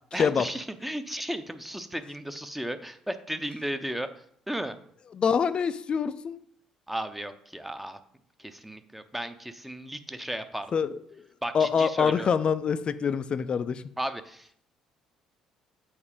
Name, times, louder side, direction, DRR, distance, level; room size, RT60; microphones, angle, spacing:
voice 1, 0.1-4.1 4.5-4.8 6.9-8.0 8.4-10.7 11.4-12.3 14.0-14.7, right 1 dB, 5° right, 9 dB, 0.7 m, -34 dB
voice 2, 5.1-6.4 10.7-11.0 11.5-13.8, left 6 dB, 40° left, 14 dB, 0.5 m, -25 dB
7.3 x 4.6 x 4.9 m, 0.66 s
figure-of-eight pair, 50°, 3 cm